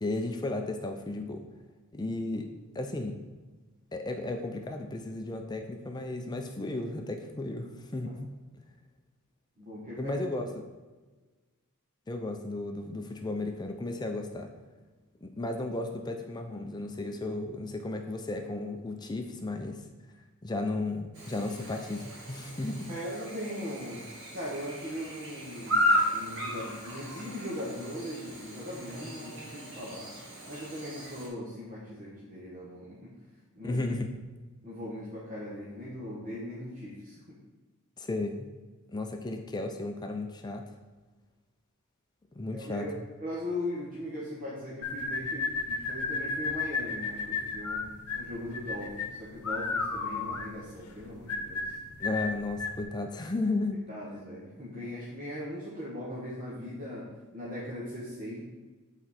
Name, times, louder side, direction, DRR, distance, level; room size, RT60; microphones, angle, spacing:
voice 1, 0.0-1.5 1.9-2.5 2.7-3.2 3.9-8.3 9.9-10.6 12.1-14.5 15.2-19.9 20.4-22.9 33.6-34.1 38.0-38.5 38.9-40.6 42.3-43.1 52.0-53.8, left 2 dB, 20° left, 4 dB, 0.5 m, -34 dB
voice 2, 9.6-10.2 22.9-30.1 30.5-33.2 33.5-33.8 34.6-37.4 42.5-42.9 43.2-47.9 48.1-51.7 53.9-58.4, left 1 dB, 40° right, -7 dB, 1.3 m, -39 dB
Chirp tweet / Buzz, 21.1-31.3, left 1 dB, 60° right, 2.1 m, -34 dB
sound 1, 44.8-52.8, left 4 dB, 90° left, 0.8 m, -33 dB
7.2 x 4.4 x 4.2 m, 1.3 s
head